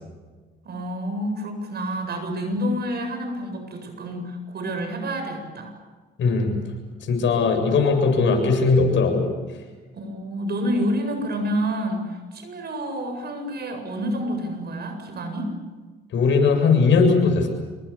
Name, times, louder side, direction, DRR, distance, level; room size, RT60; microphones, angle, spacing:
voice 1, 0.6-5.7 9.9-15.5, equal, 55° right, 6 dB, 8.0 m, -28 dB
voice 2, 6.2-6.5 7.1-9.3 16.1-17.5, left 4 dB, 70° left, 4 dB, 7.6 m, -19 dB
27.5 x 24.5 x 7.3 m, 1.3 s
cardioid pair, 90°, 20 cm